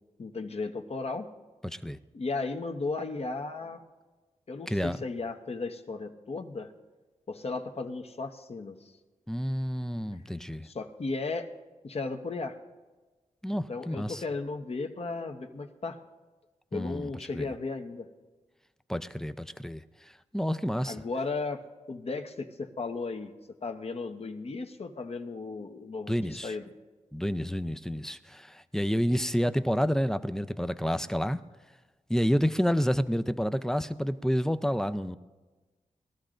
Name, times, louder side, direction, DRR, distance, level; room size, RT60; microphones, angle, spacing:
voice 1, 0.2-1.3 2.1-3.8 4.5-6.7 7.3-8.9 10.6-11.5 11.8-12.6 13.5-16.0 16.7-18.1 20.8-21.6 21.9-23.3 23.6-26.6, left 3 dB, 55° left, 1.0 m, -35 dB
voice 2, 1.6-2.0 4.7-5.0 9.3-10.7 13.4-14.2 16.7-17.5 18.9-19.8 20.3-21.0 26.1-26.5 27.1-31.4 32.1-35.2, equal, 5° left, 0.5 m, -29 dB
21.0 x 13.0 x 2.5 m
cardioid pair, 75°, 13 cm